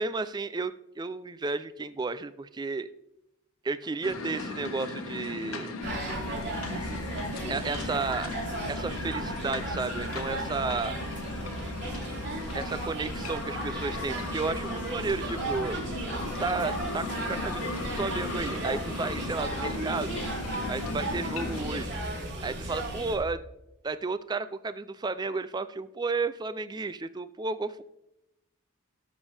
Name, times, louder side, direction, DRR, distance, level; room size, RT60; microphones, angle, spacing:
voice 1, 0.0-2.9 3.6-5.8 7.5-8.3 8.7-11.0 12.5-15.8 16.4-20.2 20.7-22.0 22.4-23.4 23.8-27.8, right 3 dB, 20° right, 14 dB, 0.3 m, -32 dB
sound 1, 4.0-21.8, left 3 dB, 80° left, 1.3 m, -37 dB
sound 2, 5.8-23.1, right 2 dB, 55° right, 3.6 m, -35 dB
17.0 x 7.2 x 3.4 m, 0.88 s
head